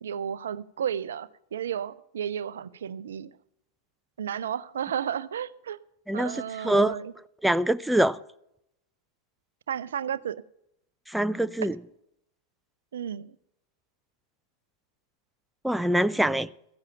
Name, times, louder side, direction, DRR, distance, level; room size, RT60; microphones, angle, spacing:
voice 1, 0.0-3.3 4.2-5.8 6.1-7.1 9.7-10.4 12.9-13.4, right 9 dB, 65° right, 0.5 m, -33 dB
voice 2, 6.6-7.0 7.4-8.2 11.1-11.8 15.6-16.5, right 1 dB, 5° right, 0.4 m, -24 dB
14.0 x 10.5 x 5.7 m
figure-of-eight pair, 90°, 0 cm